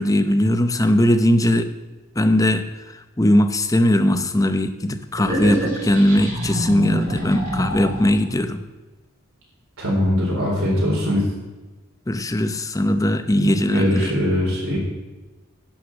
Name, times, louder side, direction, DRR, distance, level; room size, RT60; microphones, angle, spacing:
voice 1, 0.0-1.7 2.2-2.6 2.9-8.6 12.1-14.2, left 1 dB, 15° left, 9 dB, 0.7 m, -19 dB
sound 1, 5.2-8.3, right 1 dB, 35° right, 2.9 m, -25 dB
voice 2, 9.8-11.2 13.4-14.8, equal, 65° right, -4 dB, 4.1 m, -21 dB
11.5 x 6.4 x 7.4 m, 1.2 s
head